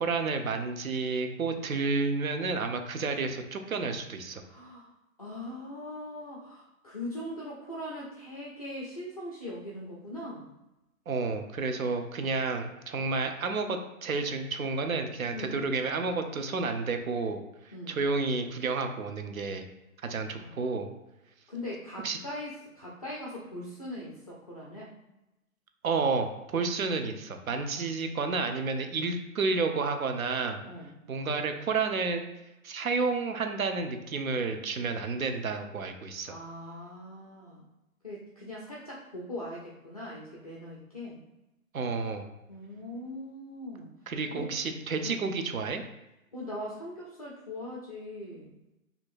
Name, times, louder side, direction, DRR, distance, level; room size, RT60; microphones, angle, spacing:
voice 1, 0.0-4.4 11.1-17.4 17.9-19.6 20.0-20.9 22.0-22.2 25.8-30.6 31.1-32.3 32.6-36.3 41.7-42.3 44.1-45.8, right 4 dB, 75° right, 6 dB, 0.7 m, -30 dB
voice 2, 4.4-4.9 5.2-10.5 15.3-15.6 17.7-18.0 20.3-20.5 21.5-24.9 30.7-30.9 36.3-37.6 38.0-41.2 42.5-43.9 44.3-44.5 45.0-45.2 46.3-48.5, left 1 dB, 30° left, -5 dB, 0.4 m, -40 dB
4.4 x 2.7 x 2.5 m, 0.94 s
figure-of-eight pair, 125°, 42 cm